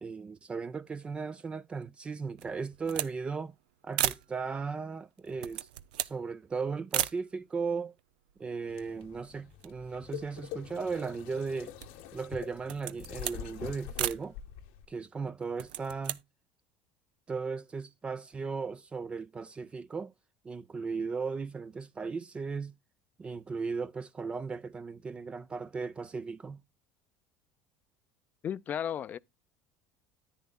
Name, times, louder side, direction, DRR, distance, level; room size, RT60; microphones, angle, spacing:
voice 1, 0.0-3.5 3.8-5.7 6.0-8.0 8.4-11.7 12.1-14.3 14.9-16.2 17.3-20.1 20.4-22.7 23.2-26.6, right 5 dB, 25° right, 0.4 m, -36 dB
sound 1, 2.4-3.2 3.5-3.6 3.9-4.3 5.2-6.2 6.9-7.2 8.0-8.1 8.3-9.2 9.5-10.8 11.3-12.1 12.6-13.4 14.0-14.3 15.4-16.2, right 13 dB, 90° right, 0.5 m, -35 dB
sound 2, 8.7-14.8, left 10 dB, 80° left, 0.9 m, -45 dB
voice 2, 28.4-29.2, left 9 dB, 40° left, 0.5 m, -34 dB
10.0 x 9.4 x 2.2 m
supercardioid pair, 100°, 4 cm